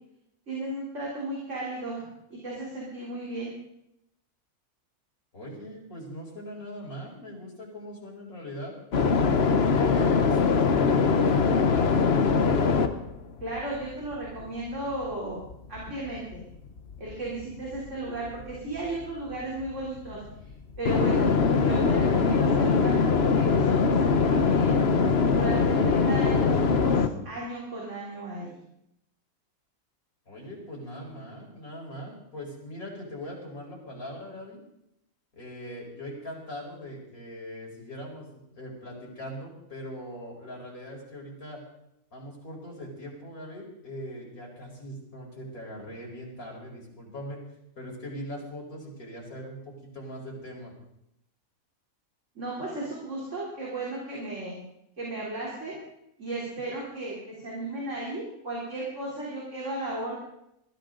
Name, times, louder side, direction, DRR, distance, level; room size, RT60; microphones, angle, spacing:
voice 1, 0.5-3.5 13.4-15.4 15.7-16.4 17.0-20.2 20.8-21.3 21.6-24.8 25.3-28.6 52.4-54.6 55.0-55.8 56.2-60.2, right 2 dB, 55° right, -5 dB, 4.0 m, -35 dB
voice 2, 5.3-8.7 9.5-12.0 30.3-34.6 35.3-41.6 42.1-47.4 47.8-50.7, equal, 80° left, -2 dB, 5.4 m, -41 dB
sound 1, 8.9-15.2 15.4-27.1, left 5 dB, 50° left, 1.2 m, -23 dB
21.5 x 14.5 x 3.9 m, 0.81 s
omnidirectional pair, 1.5 m